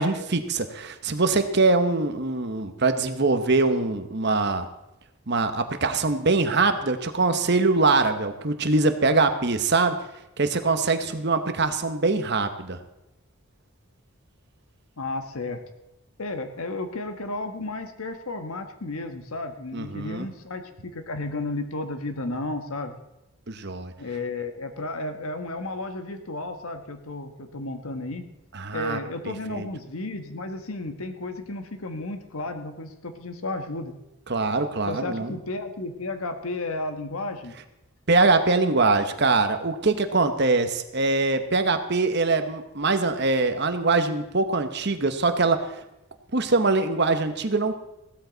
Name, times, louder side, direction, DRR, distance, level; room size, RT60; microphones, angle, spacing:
voice 1, 0.0-4.7 5.3-10.0 10.4-12.8 19.7-20.3 23.5-23.9 28.5-29.0 29.5-29.7 34.3-35.3 38.1-45.8 46.3-47.7, right 3 dB, 50° right, 8 dB, 1.1 m, -23 dB
voice 2, 15.0-15.6 16.2-22.9 24.0-28.3 28.7-34.0 34.9-37.6, left 2 dB, 75° left, 7 dB, 1.3 m, -33 dB
15.5 x 12.5 x 4.0 m, 0.91 s
head